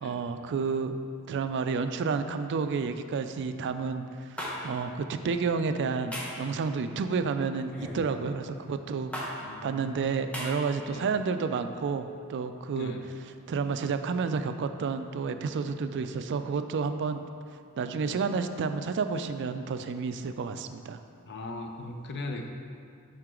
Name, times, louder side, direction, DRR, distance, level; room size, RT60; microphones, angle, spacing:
voice 1, 0.0-1.0 1.3-4.4 4.6-9.1 9.6-12.9 13.5-17.2 17.8-21.0, right 5 dB, 55° right, 9 dB, 0.3 m, -30 dB
sound 1, 4.4-4.5 6.1-6.4 7.7-8.0 9.1-9.3 10.3-10.5, equal, 5° left, 1.1 m, -35 dB
voice 2, 9.4-10.1 10.9-11.1 12.7-13.0 21.3-22.5, left 2 dB, 50° left, 3 dB, 0.7 m, -39 dB
7.7 x 5.8 x 3.7 m, 2.3 s
head